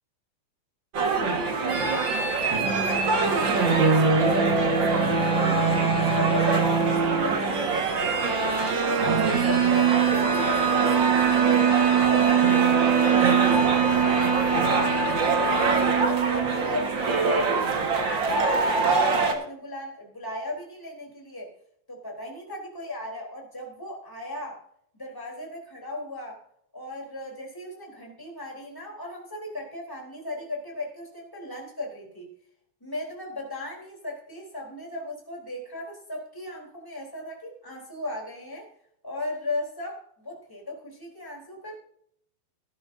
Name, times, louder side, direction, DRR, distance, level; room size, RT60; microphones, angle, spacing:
sound 1, 0.9-19.3, right 5 dB, 45° right, 1.6 m, -22 dB
voice 1, 1.8-8.4 8.7-12.8 13.1-21.5 21.9-24.6 24.9-26.4 26.7-32.3 32.8-38.7 39.0-41.8, left 1 dB, 5° left, -1 dB, 3.4 m, -37 dB
19.0 x 11.0 x 2.7 m, 0.68 s
omnidirectional pair, 4.3 m